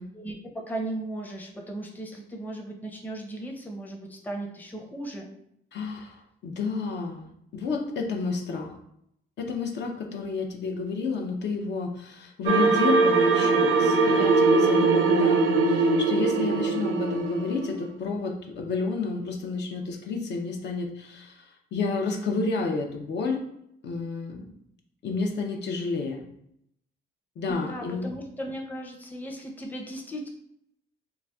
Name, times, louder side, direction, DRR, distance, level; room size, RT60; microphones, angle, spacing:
voice 1, 0.1-5.3 27.5-30.3, right 1 dB, 10° left, 0 dB, 0.6 m, -36 dB
voice 2, 5.7-8.8 9.4-23.4 23.8-24.4 25.0-26.3 27.4-28.2, left 4 dB, 60° left, 1 dB, 0.5 m, -30 dB
sound 1, 12.5-17.8, right 4 dB, 75° right, 0.5 m, -21 dB
3.9 x 2.4 x 2.3 m, 0.75 s
cardioid pair, 90°, 20 cm